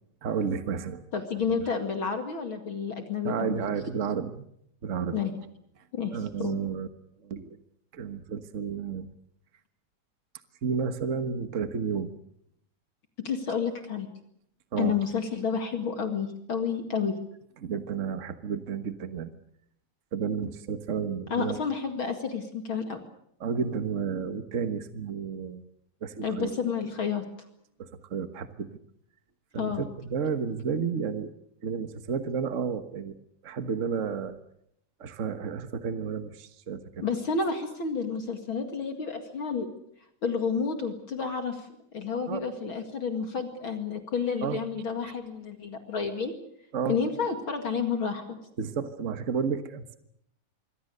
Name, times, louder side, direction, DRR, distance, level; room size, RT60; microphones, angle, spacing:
voice 1, 0.2-1.0 3.2-4.4 4.8-5.2 6.1-6.9 7.2-7.6 7.9-9.1 10.6-12.1 14.7-15.0 17.6-19.3 20.1-21.6 23.4-25.6 26.0-26.5 27.8-28.7 29.5-31.3 31.6-33.1 33.4-34.4 35.0-36.8 42.3-42.4 44.4-44.6 45.0-45.1 46.7-47.0 48.6-50.0, right 6 dB, 55° right, 9 dB, 0.8 m, -31 dB
voice 2, 1.1-3.6 5.1-5.3 5.9-6.6 13.2-14.1 14.8-17.2 21.3-23.0 26.2-27.2 29.6-29.8 37.0-39.7 40.2-46.3 46.9-48.4, left 5 dB, 45° left, 6 dB, 2.7 m, -30 dB
26.0 x 23.0 x 6.6 m, 0.72 s
omnidirectional pair, 3.3 m